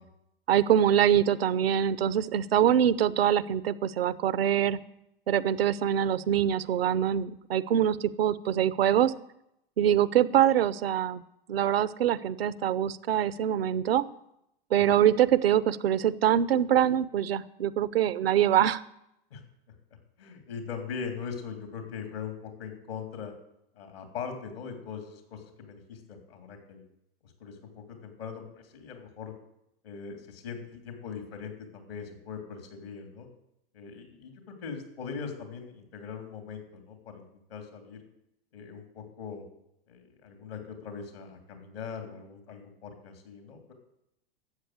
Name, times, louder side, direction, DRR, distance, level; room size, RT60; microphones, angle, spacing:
voice 1, 0.5-4.8 5.3-9.1 9.8-11.2 11.5-14.0 14.7-18.8, right 10 dB, 80° right, 16 dB, 0.7 m, -24 dB
voice 2, 20.2-23.3 23.7-26.8 27.2-29.3 29.8-33.3 33.7-38.0 38.5-39.4 39.9-43.7, left 6 dB, 80° left, 5 dB, 3.2 m, -41 dB
13.0 x 7.8 x 7.9 m, 0.82 s
hypercardioid pair, 95°, 30 cm